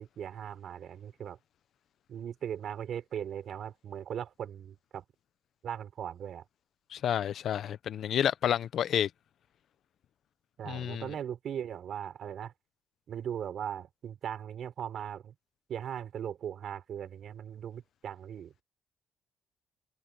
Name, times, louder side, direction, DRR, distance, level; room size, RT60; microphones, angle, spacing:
voice 1, 0.0-1.4 2.1-5.0 5.6-6.4 10.6-12.5 13.1-15.3 15.7-18.5, right 9 dB, 65° right, 6.5 m, -39 dB
voice 2, 6.9-9.1 10.7-11.0, left 10 dB, 70° left, 0.9 m, -30 dB
cardioid pair, 90°, 0 cm